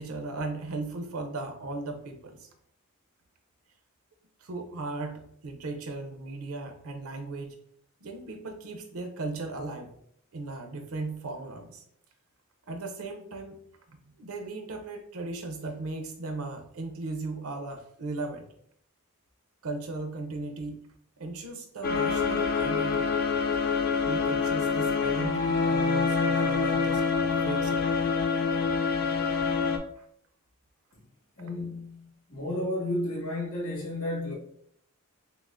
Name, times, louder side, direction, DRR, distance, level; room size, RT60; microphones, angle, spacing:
voice 1, 0.0-2.5 4.4-7.6 8.0-9.9 10.3-11.8 12.7-13.6 13.9-18.4 19.6-20.8 21.2-23.3 24.0-27.9 30.0-30.1, right 3 dB, 75° right, 0.7 m, -37 dB
sound 1, 21.8-29.8, left 5 dB, 45° left, 0.4 m, -26 dB
voice 2, 31.4-34.3, left 1 dB, 75° left, 1.4 m, -32 dB
5.8 x 2.0 x 2.5 m
head